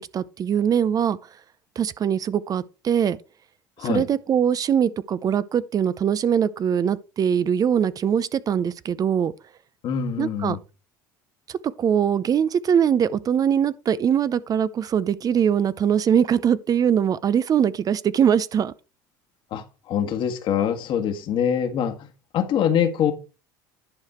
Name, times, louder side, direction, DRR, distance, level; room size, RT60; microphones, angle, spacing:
voice 1, 0.1-1.2 1.8-3.2 3.8-9.3 10.2-10.6 11.5-18.7, right 8 dB, 35° right, 0.5 m, -22 dB
voice 2, 9.8-10.6 19.5-22.0 22.3-23.1, left 8 dB, 55° left, 1.6 m, -24 dB
10.5 x 4.9 x 4.4 m
hypercardioid pair, 85°, 10 cm